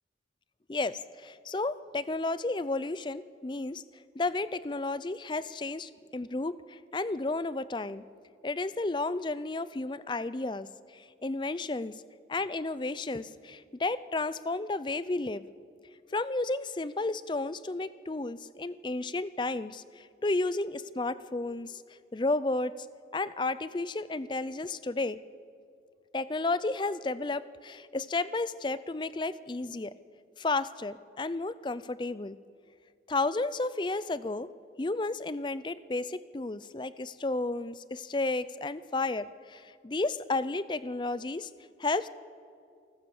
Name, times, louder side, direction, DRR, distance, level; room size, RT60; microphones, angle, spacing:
voice 1, 0.7-3.8 4.1-8.0 8.4-10.7 10.9-11.9 12.3-15.4 16.1-21.8 22.1-22.7 23.1-25.2 26.1-29.9 30.4-32.4 33.1-34.5 34.8-41.5 41.8-42.1, left 2 dB, 25° left, 16 dB, 0.5 m, -32 dB
28.5 x 14.0 x 7.1 m, 2.4 s
head